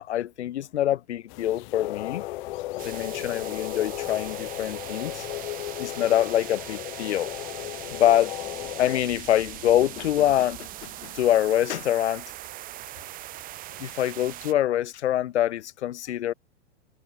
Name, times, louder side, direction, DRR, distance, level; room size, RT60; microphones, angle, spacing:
voice 1, 0.0-2.2 2.7-5.3 5.8-7.3 7.9-8.4 8.8-12.2 13.8-16.3, left 12 dB, 75° left, 1.4 m, -25 dB
sound 1, 1.3-10.4, left 27 dB, 35° left, 4.0 m, -48 dB
sound 2, 1.7-9.0, left 16 dB, 55° left, 3.3 m, -35 dB
sound 3, 2.8-14.5, right 15 dB, 25° right, 1.7 m, -41 dB
hypercardioid pair, 145°, 34 cm